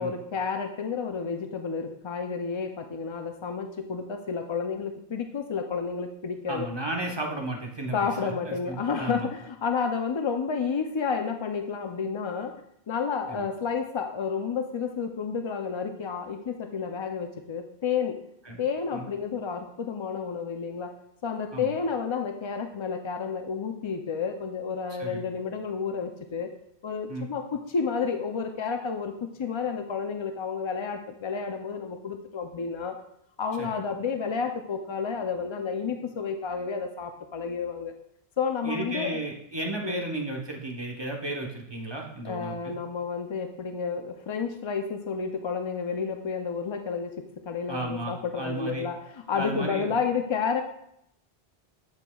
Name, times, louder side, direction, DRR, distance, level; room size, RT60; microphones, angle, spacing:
voice 1, 0.0-6.7 7.9-12.6 12.9-18.2 18.6-21.0 21.2-26.5 26.8-33.0 33.4-37.9 38.4-39.2 39.8-40.1 42.2-50.6, left 6 dB, 50° left, 5 dB, 0.3 m, -31 dB
voice 2, 6.5-9.2 13.3-13.5 18.5-18.6 18.9-19.0 21.5-21.7 25.0-25.2 27.1-27.3 33.6-33.8 38.6-42.7 47.7-48.8 49.3-49.9, right 2 dB, 25° right, 1 dB, 1.0 m, -34 dB
8.0 x 7.2 x 2.3 m, 0.73 s
omnidirectional pair, 1.0 m